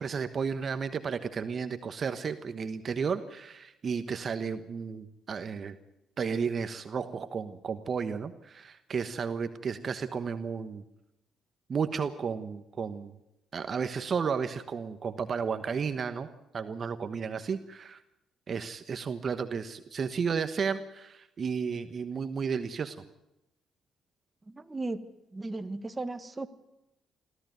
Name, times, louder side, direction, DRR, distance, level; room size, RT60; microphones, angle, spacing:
voice 1, 0.0-5.8 6.2-10.8 11.7-13.1 13.5-16.3 16.5-18.0 18.5-23.0, right 6 dB, 45° right, 10 dB, 1.2 m, -33 dB
voice 2, 24.6-25.0 25.3-26.5, right 2 dB, 20° right, 9 dB, 1.6 m, -35 dB
24.0 x 14.5 x 9.3 m, 0.89 s
cardioid pair, 90°, 0 cm